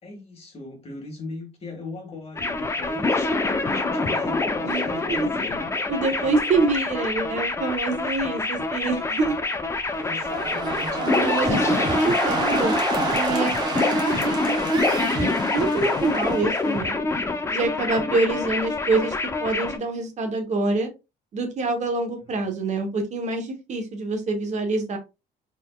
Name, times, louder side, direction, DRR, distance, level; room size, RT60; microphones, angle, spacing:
voice 1, 0.0-5.6 10.0-12.1 22.3-22.4, left 3 dB, 35° left, 1.9 m, -38 dB
sound 1, 2.4-19.8, left 3 dB, 15° left, 0.6 m, -26 dB
voice 2, 4.6-5.3 5.9-9.4 11.0-11.6 11.9-12.8 13.1-17.0 17.5-20.9 21.3-25.0, right 3 dB, 45° right, 1.1 m, -26 dB
sound 2, 9.9-16.8, right 3 dB, 25° right, 1.1 m, -30 dB
4.2 x 3.6 x 2.3 m
cardioid pair, 110°, 17 cm